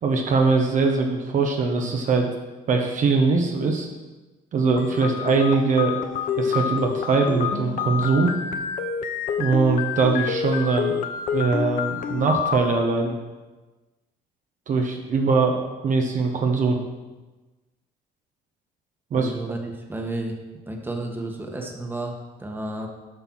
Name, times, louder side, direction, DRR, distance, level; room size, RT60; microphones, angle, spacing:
voice 1, 0.0-2.3 2.7-3.9 4.5-6.0 6.4-8.3 9.4-11.0 11.3-13.2 14.7-16.8 19.1-19.3, right 4 dB, 50° right, 2 dB, 1.1 m, -22 dB
sound 1, 4.8-12.8, left 7 dB, 55° left, 0.8 m, -28 dB
voice 2, 19.1-20.4 20.7-22.9, right 2 dB, 10° right, 2 dB, 1.4 m, -32 dB
8.0 x 5.5 x 6.2 m, 1.2 s
cardioid pair, 110°, 17 cm